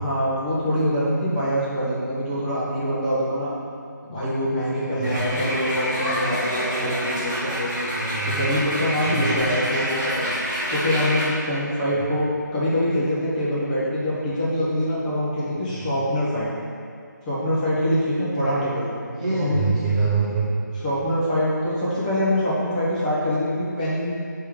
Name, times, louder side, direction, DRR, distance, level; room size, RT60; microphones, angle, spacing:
voice 1, 0.0-3.5 4.1-7.9 8.2-10.3 10.7-16.5 17.3-18.9 19.3-19.6 20.7-24.1, equal, 25° left, -9 dB, 1.3 m, -24 dB
voice 2, 4.8-5.2 7.9-8.4 9.0-9.4 15.7-15.8 19.1-20.5, right 4 dB, 20° right, -10 dB, 0.8 m, -25 dB
sound 1, 5.0-11.2, equal, 5° right, 1.3 m, -27 dB
5.5 x 3.4 x 5.1 m, 2.3 s
figure-of-eight pair, 165°, 11 cm